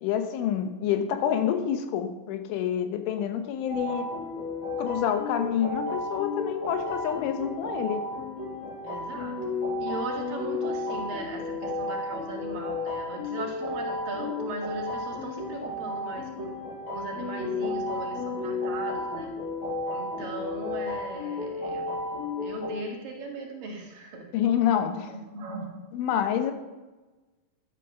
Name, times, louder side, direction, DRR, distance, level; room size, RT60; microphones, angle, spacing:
voice 1, 0.0-4.1 4.8-8.1 24.3-25.1 25.9-26.5, left 9 dB, 75° left, 8 dB, 3.4 m, -27 dB
sound 1, 3.7-22.7, left 2 dB, 35° left, 6.8 m, -33 dB
voice 2, 8.8-9.4 9.8-16.5 16.9-19.3 19.9-21.9 22.4-24.3 25.3-25.7, right 3 dB, 55° right, 1 dB, 3.1 m, -38 dB
12.5 x 11.0 x 6.8 m, 1.2 s
omnidirectional pair, 5.9 m